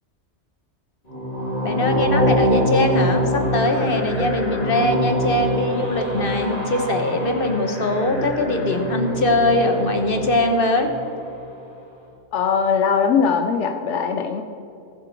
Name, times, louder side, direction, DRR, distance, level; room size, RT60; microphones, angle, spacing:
sound 1, 1.1-11.2, equal, 35° left, 2.6 m, -24 dB
voice 1, 1.6-10.9, left 2 dB, 55° left, 5 dB, 1.4 m, -22 dB
voice 2, 12.3-14.4, left 6 dB, 85° left, 5 dB, 1.0 m, -20 dB
20.5 x 7.6 x 4.5 m, 2.8 s
omnidirectional pair, 1.2 m